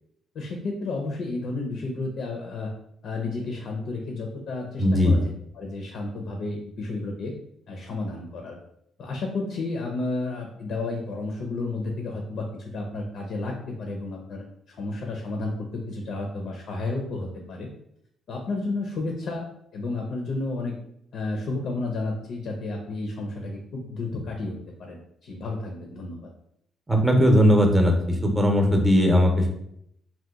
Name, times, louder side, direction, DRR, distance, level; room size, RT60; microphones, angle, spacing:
voice 1, 0.3-2.7 3.0-7.3 7.7-8.6 9.0-17.7 18.3-19.4 19.7-20.8 21.1-26.3, left 2 dB, 70° left, 1 dB, 0.5 m, -32 dB
voice 2, 4.8-5.2 26.9-29.5, equal, 15° right, 2 dB, 0.7 m, -19 dB
2.9 x 2.1 x 3.5 m, 0.74 s
cardioid pair, 90°, 0 cm